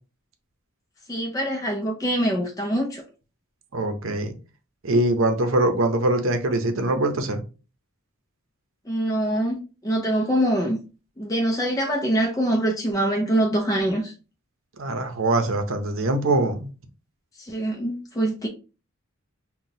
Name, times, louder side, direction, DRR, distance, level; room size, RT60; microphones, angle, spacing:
voice 1, 1.1-3.0 8.9-10.8 11.2-14.1 17.4-18.5, right 1 dB, 15° left, 0.5 m, -24 dB
voice 2, 3.7-4.3 4.8-7.4 14.8-16.7, right 2 dB, 70° right, 0.7 m, -23 dB
5.7 x 2.2 x 2.7 m
head